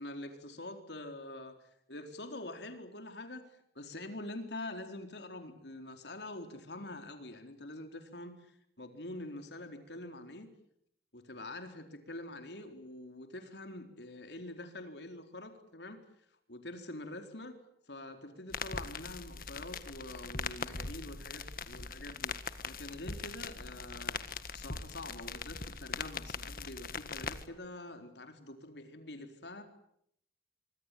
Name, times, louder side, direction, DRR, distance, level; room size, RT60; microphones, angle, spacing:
voice 1, 0.0-1.6 1.9-3.5 3.8-10.5 11.1-16.0 16.5-17.6 17.9-22.4 22.6-24.2 24.5-29.6, left 1 dB, 80° left, 7 dB, 4.2 m, -45 dB
sound 1, 18.5-27.5, left 5 dB, 55° left, 1.7 m, -41 dB
25.0 x 24.5 x 9.4 m, 0.72 s
head